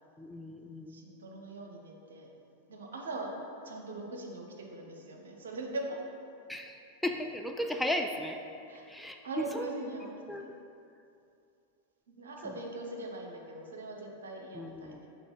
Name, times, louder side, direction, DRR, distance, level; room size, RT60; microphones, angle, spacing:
voice 1, 0.2-1.0 6.5-8.4 8.9-9.7 10.0-10.6 12.4-12.5 14.5-15.1, left 1 dB, ahead, 3 dB, 0.3 m, -36 dB
voice 2, 0.9-2.3 2.7-3.3 3.6-6.0 8.7-8.9 9.2-10.1 10.4-10.6 12.1-15.1, right 2 dB, 65° right, 1 dB, 0.8 m, -41 dB
6.9 x 3.5 x 4.3 m, 2.6 s
figure-of-eight pair, 90°, 0 cm